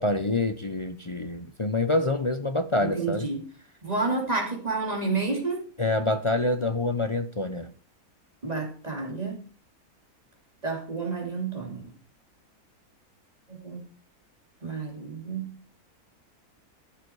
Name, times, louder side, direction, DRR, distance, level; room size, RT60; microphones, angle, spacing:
voice 1, 0.0-3.3 5.8-7.7, left 2 dB, 35° left, 0.5 m, -26 dB
voice 2, 2.8-3.4 3.8-5.6 8.4-9.4 10.6-11.8 13.5-13.8 14.6-15.6, right 3 dB, 25° right, 3.2 m, -30 dB
14.0 x 7.0 x 4.7 m
omnidirectional pair, 1.6 m